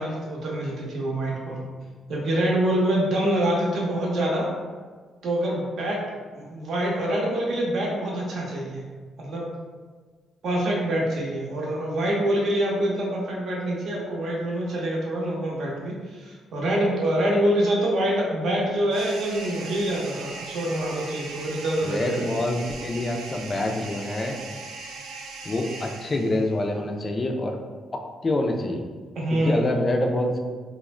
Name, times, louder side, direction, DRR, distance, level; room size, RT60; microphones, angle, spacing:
voice 1, 0.0-1.6 2.1-4.5 5.2-6.0 6.3-8.8 9.2-9.5 10.4-22.2 29.2-29.7, right 1 dB, 65° right, -3 dB, 0.7 m, -25 dB
sound 1, 18.9-26.6, right 4 dB, 85° right, 0.3 m, -39 dB
voice 2, 21.8-24.4 25.4-27.6 27.9-28.8 29.4-30.4, left 1 dB, 30° left, 3 dB, 0.4 m, -26 dB
2.4 x 2.1 x 3.1 m, 1.5 s
cardioid pair, 90°, 0 cm